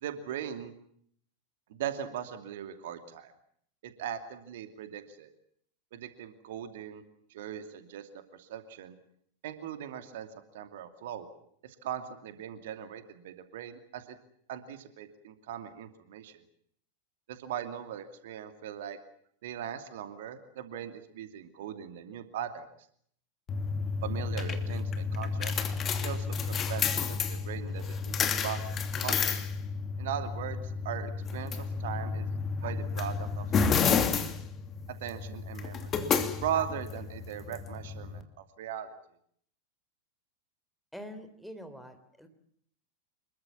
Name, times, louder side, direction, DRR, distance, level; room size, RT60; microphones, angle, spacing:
voice 1, 0.0-0.7 1.7-3.3 3.8-5.3 5.9-7.0 7.3-8.9 9.4-10.3 10.5-11.3 11.6-14.2 14.5-16.4 17.3-19.0 19.4-22.6 24.0-25.6 26.0-28.2 28.4-29.4 30.0-32.3 32.6-33.5 34.0-34.4 35.0-36.0 36.4-38.9, right 9 dB, 55° right, 8 dB, 2.7 m, -39 dB
sound 1, 23.5-38.2, left 5 dB, 25° left, 2.8 m, -31 dB
voice 2, 40.9-42.3, equal, ahead, 7 dB, 4.0 m, -45 dB
27.0 x 22.5 x 7.2 m, 0.66 s
figure-of-eight pair, 90°, 0 cm